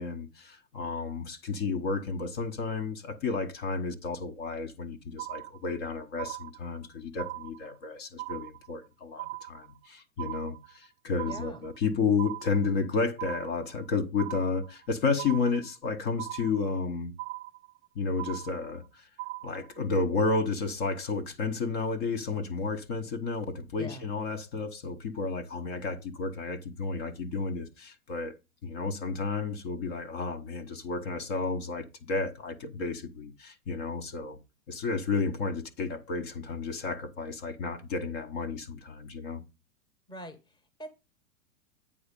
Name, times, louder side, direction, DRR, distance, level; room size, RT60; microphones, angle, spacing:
voice 1, 0.0-17.1 17.9-19.1 19.4-28.4 28.6-34.4 34.7-39.4, left 4 dB, 45° left, 1.3 m, -32 dB
sound 1, 5.2-5.9 6.2-6.9 7.2-7.9 8.2-8.9 9.2-9.9 10.2-10.9 11.2-11.9 12.2-12.9 13.2-13.9 14.2-14.9 15.2-15.9 16.2-16.9 17.2-17.9 18.2-18.9 19.2-19.9, right 20 dB, 25° right, 0.6 m, -40 dB
voice 2, 11.3-11.7 23.8-24.0 40.1-40.9, equal, 10° left, 1.3 m, -43 dB
8.8 x 3.9 x 5.2 m
hypercardioid pair, 115°, 43 cm